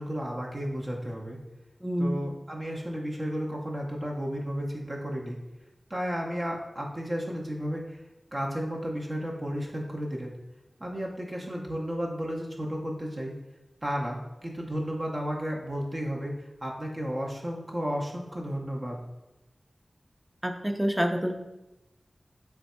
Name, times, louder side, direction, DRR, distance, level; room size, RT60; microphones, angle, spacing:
voice 1, 0.0-1.4 2.0-5.4 5.9-8.0 8.3-10.4 10.8-13.3 13.8-19.0, equal, 40° right, -2 dB, 0.7 m, -33 dB
voice 2, 1.8-2.2 20.4-21.3, equal, 10° right, 5 dB, 0.5 m, -27 dB
3.4 x 3.3 x 4.2 m, 0.97 s
wide cardioid pair, 75°, 0 cm